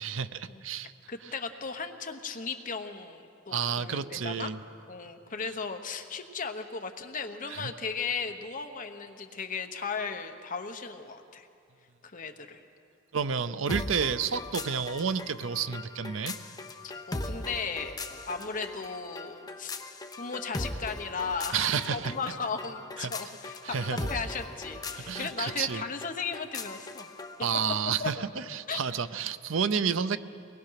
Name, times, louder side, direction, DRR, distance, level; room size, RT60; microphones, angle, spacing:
voice 1, 0.0-0.9 3.5-4.6 7.5-7.7 13.1-16.4 21.5-22.2 23.0-23.1 23.6-24.1 24.9-25.8 27.4-30.2, right 6 dB, 65° right, 13 dB, 0.6 m, -30 dB
voice 2, 1.1-4.5 4.9-11.5 12.0-12.6 17.1-18.0 18.3-19.7 20.2-27.1 28.0-28.2 28.7-28.8, left 5 dB, 40° left, 6 dB, 1.1 m, -36 dB
sound 1, 13.7-27.4, left 2 dB, 20° left, 0.9 m, -39 dB
23.5 x 19.5 x 5.8 m, 2.5 s
head